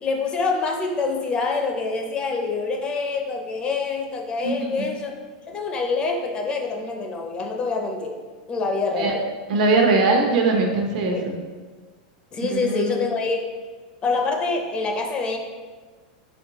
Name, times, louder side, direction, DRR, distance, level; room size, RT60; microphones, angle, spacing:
voice 1, 0.0-5.2 5.5-8.2 8.5-9.2 11.1-11.2 12.3-13.4 14.0-15.4, left 4 dB, 20° left, 3 dB, 0.4 m, -26 dB
voice 2, 4.4-4.9 9.0-9.2 9.5-11.3 12.5-12.9, right 3 dB, 65° right, 2 dB, 0.8 m, -21 dB
4.3 x 3.8 x 2.9 m, 1.4 s
supercardioid pair, 150°, 4 cm